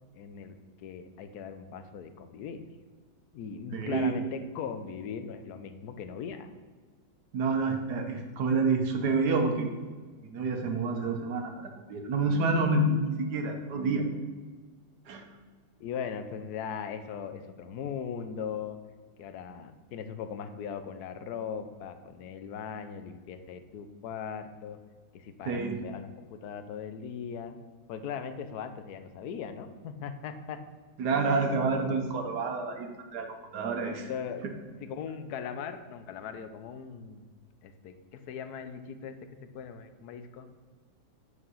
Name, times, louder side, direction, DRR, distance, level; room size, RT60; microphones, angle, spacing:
voice 1, 0.1-2.6 3.3-6.5 15.8-18.8 19.2-24.8 25.1-27.6 27.9-30.6 33.9-34.5 34.8-37.3 37.6-39.2 39.4-40.5, left 7 dB, 65° left, 9 dB, 1.1 m, -39 dB
voice 2, 3.7-4.1 7.3-9.7 10.3-14.1 15.1-15.2 25.4-25.8 31.0-34.1, right 3 dB, 65° right, 4 dB, 1.5 m, -28 dB
8.0 x 4.9 x 5.6 m, 1.4 s
omnidirectional pair, 2.0 m